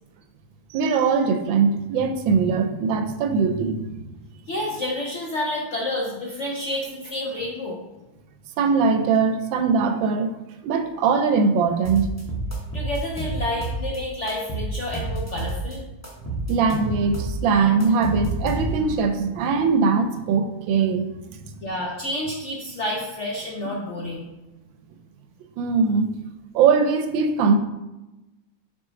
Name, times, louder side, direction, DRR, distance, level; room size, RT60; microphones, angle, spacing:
voice 1, 0.7-4.1 8.6-10.3 10.6-12.1 16.3-21.1 25.6-26.1 26.5-27.6, right 5 dB, 75° right, 8 dB, 1.3 m, -21 dB
voice 2, 4.5-7.8 12.7-15.8 21.6-24.3, left 1 dB, 70° left, -2 dB, 0.7 m, -29 dB
sound 1, 11.8-14.0 14.3-15.7 16.0-19.0, right 2 dB, 15° left, 0.6 m, -29 dB
6.3 x 4.5 x 3.8 m, 1.0 s
omnidirectional pair, 2.3 m